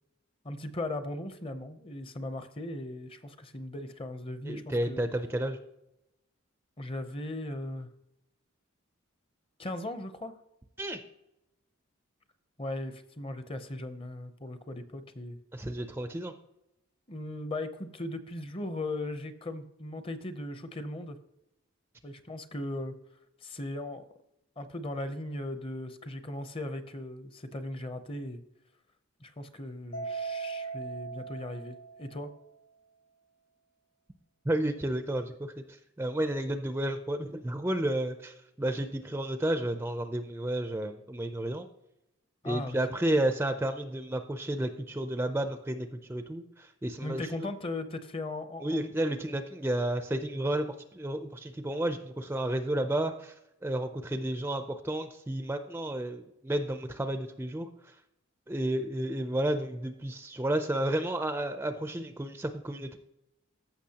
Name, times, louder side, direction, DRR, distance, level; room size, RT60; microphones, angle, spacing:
voice 1, 0.4-5.1 6.8-7.9 9.6-10.3 12.6-15.4 17.1-21.2 22.0-22.9 23.4-24.0 24.6-28.4 29.2-32.3 42.4-42.8 47.0-48.9, left 1 dB, 25° left, 10 dB, 0.6 m, -38 dB
voice 2, 4.4-5.6 10.8-11.0 15.5-16.3 34.5-35.5 36.0-41.7 42.4-47.3 48.6-50.7 50.9-53.3 53.6-57.7 58.5-63.0, right 1 dB, 10° right, 8 dB, 0.4 m, -31 dB
Mallet percussion, 29.9-32.4, right 5 dB, 65° left, 1.5 m, -38 dB
14.5 x 6.0 x 2.8 m, 0.84 s
head